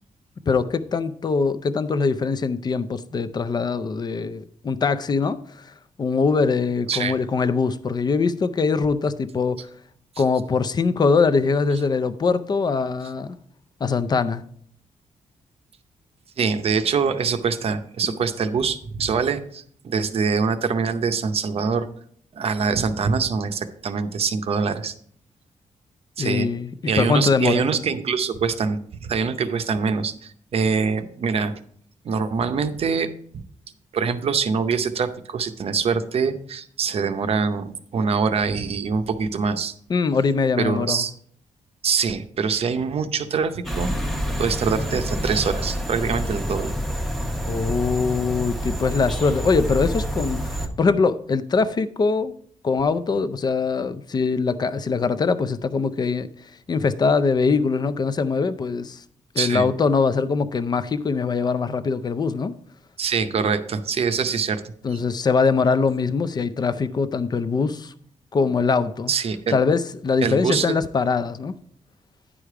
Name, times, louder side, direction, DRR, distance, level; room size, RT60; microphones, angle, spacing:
voice 1, 0.5-5.7 6.0-9.7 10.2-13.4 13.8-14.4 18.1-18.2 26.2-26.7 27.0-27.7 39.9-41.1 47.5-52.3 52.6-56.3 56.7-59.0 59.3-62.5 64.8-67.9 68.3-69.1 69.5-71.6, left 4 dB, 35° left, 0.5 m, -22 dB
voice 2, 16.4-21.9 22.3-24.9 26.2-26.5 26.9-31.5 32.0-33.1 33.9-39.7 40.6-41.1 41.8-43.9 44.4-46.7 59.4-59.7 63.0-64.6 69.1-69.6 70.2-70.8, right 5 dB, 50° right, 0.7 m, -24 dB
sound 1, 43.6-50.7, equal, ahead, 0.9 m, -27 dB
10.0 x 4.9 x 4.8 m
wide cardioid pair, 145°, 13 cm